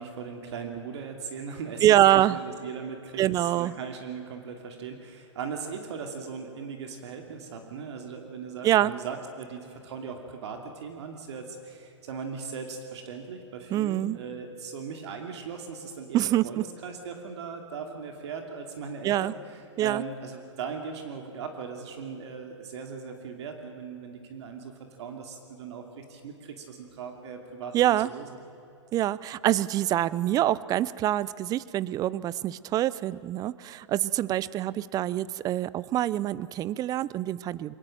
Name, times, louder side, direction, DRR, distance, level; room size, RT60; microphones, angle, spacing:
voice 1, 0.0-1.9 2.1-24.7 25.0-28.4, right 5 dB, 65° right, 4 dB, 2.6 m, -39 dB
voice 2, 1.8-2.4 3.2-3.7 8.6-8.9 13.7-14.2 16.1-16.7 19.0-19.3 19.8-20.0 27.7-28.1 28.9-37.7, right 13 dB, 25° right, 20 dB, 0.5 m, -25 dB
23.0 x 19.0 x 7.7 m, 2.9 s
hypercardioid pair, 125°, 15 cm